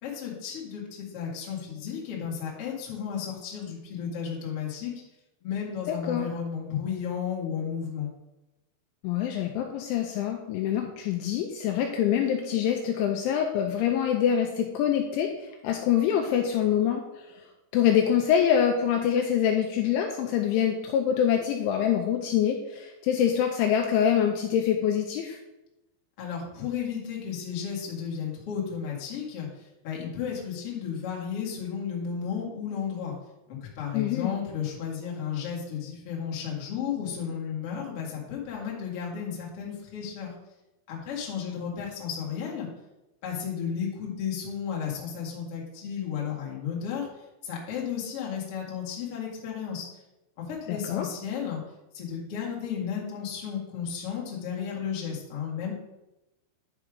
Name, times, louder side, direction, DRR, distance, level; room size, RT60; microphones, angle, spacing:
voice 1, 0.0-4.9 5.4-8.1 26.2-33.1 33.5-40.3 40.9-42.7 43.2-47.1 47.4-49.9 50.4-51.6 51.9-55.7, left 7 dB, 50° left, -3 dB, 1.7 m, -33 dB
voice 2, 5.9-6.3 9.0-17.0 17.7-25.4 33.9-34.3 50.7-51.1, left 9 dB, 85° left, 3 dB, 2.8 m, -25 dB
10.5 x 4.9 x 5.0 m, 0.96 s
omnidirectional pair, 5.9 m